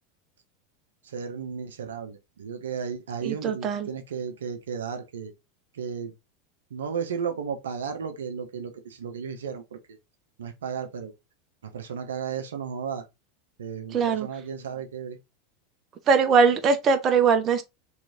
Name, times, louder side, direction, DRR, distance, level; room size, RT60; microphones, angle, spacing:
voice 1, 1.0-5.3 5.7-6.1 6.7-10.0 10.4-11.1 11.7-13.1 13.6-15.2, right 6 dB, 75° right, 0.7 m, -34 dB
voice 2, 3.2-3.9 13.9-14.3 16.1-17.6, right 5 dB, 35° right, 0.7 m, -21 dB
3.2 x 3.1 x 3.8 m
hypercardioid pair, 85°, 0 cm